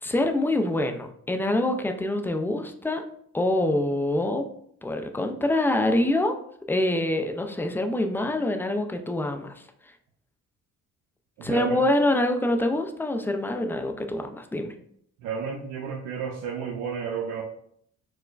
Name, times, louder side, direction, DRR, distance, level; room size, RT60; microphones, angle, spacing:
voice 1, 0.0-3.0 3.3-4.5 4.8-6.4 6.7-9.5 11.4-14.7, left 1 dB, 5° left, 5 dB, 0.3 m, -25 dB
voice 2, 11.4-11.8 15.2-17.4, right 6 dB, 80° right, -3 dB, 0.6 m, -32 dB
4.7 x 2.0 x 2.3 m, 0.66 s
cardioid pair, 90°, 30 cm